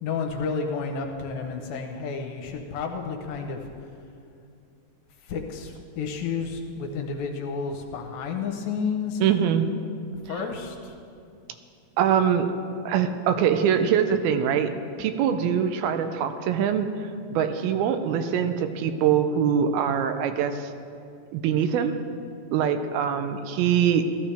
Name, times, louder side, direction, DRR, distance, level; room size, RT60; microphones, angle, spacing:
voice 1, 0.0-3.7 5.3-9.2 10.3-10.9, left 5 dB, 80° left, 2 dB, 2.5 m, -31 dB
voice 2, 9.2-9.7 10.3-10.4 12.0-12.5 12.9-14.7 15.0-20.7 21.3-22.0 22.5-24.0, right 8 dB, 90° right, 9 dB, 2.6 m, -23 dB
14.5 x 13.5 x 3.4 m, 2.5 s
omnidirectional pair, 4.3 m